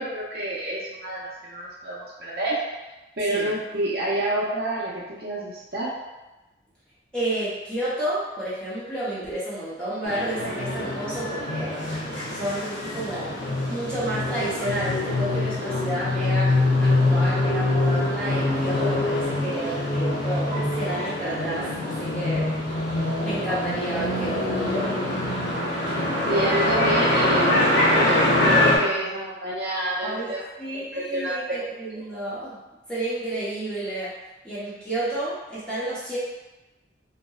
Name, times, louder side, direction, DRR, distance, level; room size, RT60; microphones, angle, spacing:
voice 1, 0.0-2.6 3.2-5.9 12.9-13.1 26.3-30.4 30.9-31.6, right 1 dB, 55° right, -6 dB, 0.5 m, -28 dB
voice 2, 7.1-11.8 12.3-13.3 13.7-22.5 23.2-25.0 30.0-30.3 30.6-32.6 32.9-34.1 34.4-36.2, right 1 dB, 5° left, -11 dB, 0.7 m, -31 dB
sound 1, 10.1-28.8, left 1 dB, 70° left, 0.6 m, -24 dB
2.7 x 2.1 x 2.3 m, 1.1 s
head